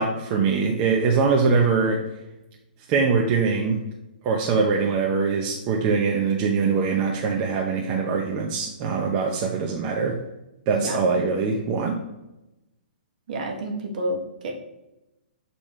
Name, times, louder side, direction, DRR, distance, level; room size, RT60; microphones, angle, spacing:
voice 1, 0.0-2.0 2.9-3.8 4.2-10.2 10.7-12.0, right 5 dB, 35° right, 0 dB, 0.8 m, -22 dB
voice 2, 13.3-14.2 14.4-14.6, right 1 dB, 55° right, 2 dB, 1.4 m, -29 dB
7.1 x 4.2 x 3.3 m, 0.93 s
hypercardioid pair, 130°, 5 cm